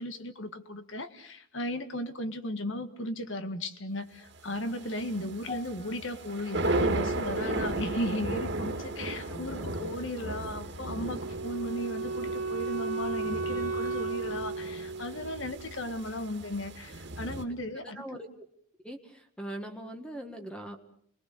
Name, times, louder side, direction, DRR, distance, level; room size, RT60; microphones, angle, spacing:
voice 1, 0.0-18.2, left 1 dB, 60° left, 9 dB, 1.7 m, -36 dB
sound 1, 4.4-17.4, right 2 dB, 55° right, 2.2 m, -35 dB
sound 2, 5.5-9.9 10.1-10.5 11.2-11.3, left 6 dB, 30° left, 1.2 m, -50 dB
voice 2, 9.3-9.9 17.2-17.3 17.9-18.3 18.8-20.8, right 1 dB, 5° left, 4 dB, 1.5 m, -41 dB
Wind instrument woodwind instrument, 10.8-15.9, right 3 dB, 85° right, 2.0 m, -35 dB
29.5 x 21.0 x 6.7 m, 0.66 s
head